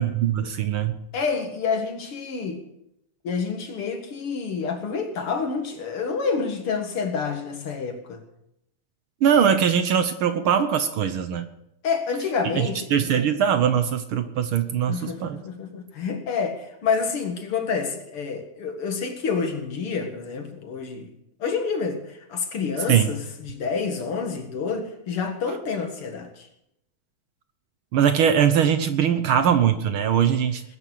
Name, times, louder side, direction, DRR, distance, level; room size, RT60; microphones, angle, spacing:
voice 1, 0.0-0.9 9.2-11.5 12.5-15.4 22.9-23.1 27.9-30.6, right 8 dB, 65° right, 10 dB, 1.3 m, -21 dB
voice 2, 1.1-2.6 3.2-8.2 11.8-13.3 14.9-21.1 21.4-26.5, left 5 dB, 50° left, 5 dB, 2.4 m, -28 dB
20.0 x 9.8 x 6.6 m, 0.81 s
omnidirectional pair, 3.4 m